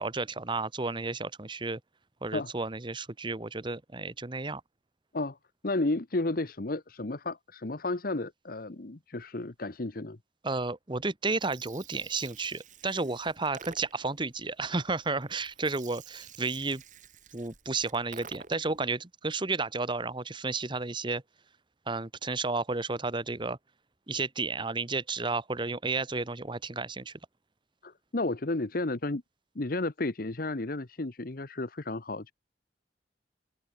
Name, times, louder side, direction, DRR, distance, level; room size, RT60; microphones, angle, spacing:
voice 1, 0.0-1.8 2.2-4.6 10.4-16.8 17.3-21.2 21.9-23.6 24.1-27.1, right 3 dB, 30° right, 1.2 m, -32 dB
voice 2, 5.6-10.2 27.8-29.2 29.5-32.3, left 2 dB, 55° left, 1.1 m, -32 dB
Gurgling, 11.3-18.8, right 7 dB, 45° right, 2.9 m, -51 dB
open air
head